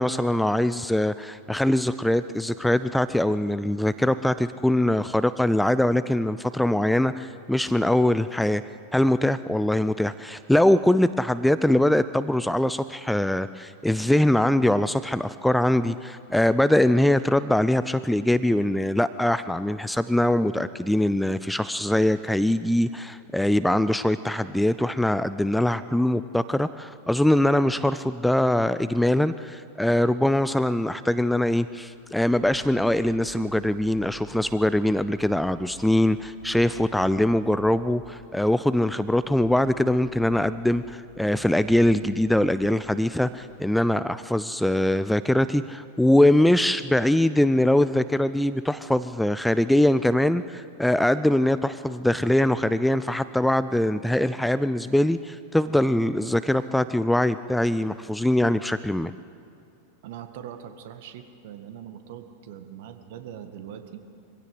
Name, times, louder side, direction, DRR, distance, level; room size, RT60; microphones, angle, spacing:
voice 1, 0.0-8.6 8.9-59.1, left 1 dB, 5° left, 14 dB, 0.5 m, -22 dB
sound 1, 31.5-43.7, left 1 dB, 90° right, 6.9 m, -49 dB
voice 2, 60.0-64.0, right 9 dB, 55° right, 8 dB, 1.8 m, -41 dB
23.5 x 16.5 x 8.0 m, 2.5 s
figure-of-eight pair, 90°, 0 cm